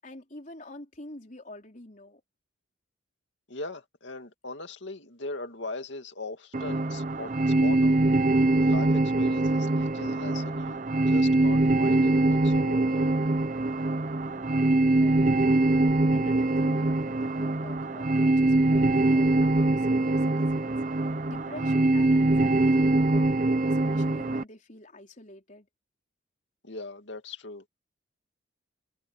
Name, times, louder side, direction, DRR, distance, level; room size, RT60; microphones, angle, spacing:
voice 1, 0.0-2.2 14.2-14.7 14.9-15.7 16.1-25.7, left 1 dB, 40° left, 4.3 m, -47 dB
voice 2, 3.5-7.3 7.6-8.1 8.6-13.2 26.6-27.6, left 2 dB, 65° left, 2.5 m, -40 dB
sound 1, 6.5-24.4, right 2 dB, 40° right, 0.8 m, -23 dB
head